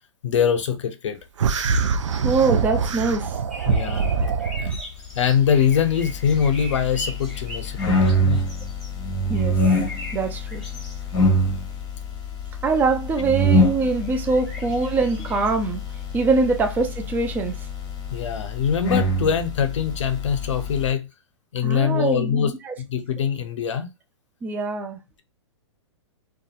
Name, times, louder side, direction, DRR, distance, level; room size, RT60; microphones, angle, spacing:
voice 1, 0.2-1.2 3.7-4.2 4.6-4.7 5.2-8.5 18.1-21.1 21.5-22.5 22.9-23.9, left 7 dB, 75° left, 0.5 m, -23 dB
sound 1, 1.4-4.8, right 5 dB, 80° right, 0.4 m, -23 dB
voice 2, 2.2-3.3 9.3-9.6 10.1-10.6 12.6-15.8 16.1-17.5 21.6-22.7 24.4-25.0, right 4 dB, 10° right, 0.3 m, -23 dB
sound 2, 3.5-8.9 9.3-11.3 11.5-11.6 13.9-15.5 16.1-16.8 17.3-17.5, left 1 dB, 5° left, 1.1 m, -41 dB
sound 3, 5.5-20.9, left 1 dB, 25° left, 0.8 m, -25 dB
2.7 x 2.3 x 2.3 m
hypercardioid pair, 125°, 15 cm